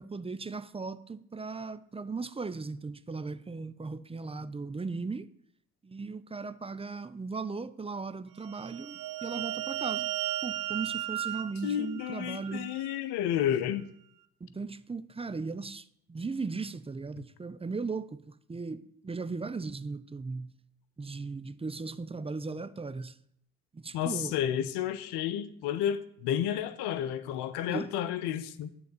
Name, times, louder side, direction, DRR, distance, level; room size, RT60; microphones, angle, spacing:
voice 1, 0.0-5.3 5.8-10.1 10.4-12.7 14.4-20.6 21.0-23.2 23.7-24.3 27.7-27.9, right 4 dB, 15° right, 0.5 m, -37 dB
sound 1, 8.5-12.9, right 13 dB, 55° right, 0.9 m, -36 dB
voice 2, 11.6-13.9 17.2-17.3 23.9-28.7, left 10 dB, 60° left, 0.9 m, -31 dB
11.5 x 3.9 x 7.6 m
figure-of-eight pair, 45°, 45 cm